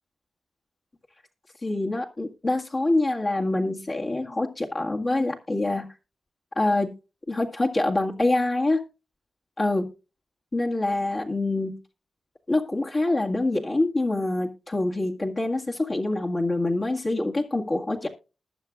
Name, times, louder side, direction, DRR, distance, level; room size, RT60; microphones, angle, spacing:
voice 1, 1.6-5.9 6.6-6.9 7.3-8.8 9.6-9.9 10.5-11.8 12.5-18.1, left 2 dB, 40° left, -1 dB, 1.9 m, -25 dB
20.0 x 7.1 x 2.5 m, 0.31 s
cardioid pair, 60°, 0 cm